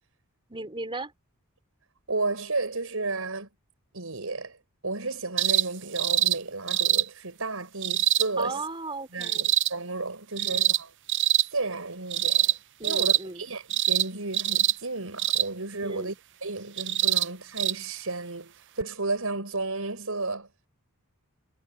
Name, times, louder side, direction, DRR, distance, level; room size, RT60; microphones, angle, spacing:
voice 1, 0.5-1.1 8.4-9.5 10.4-10.7 12.8-13.5 15.8-16.2, right 3 dB, 25° right, 3.7 m, -36 dB
voice 2, 2.1-3.5 3.9-4.6 4.8-8.6 9.1-10.9 11.5-12.6 12.8-13.1 13.4-16.1 16.4-20.5, right 3 dB, 70° right, 5.6 m, -32 dB
sound 1, 5.4-5.7 6.0-6.4 6.7-7.0 7.8-8.3 9.2-9.7 10.4-10.8 11.1-11.5 12.1-12.6 12.8-13.2 13.7-14.1 14.3-14.7 15.2-15.5 16.8-17.3 17.6-17.7 18.8-18.9, right 12 dB, 55° right, 0.6 m, -24 dB
head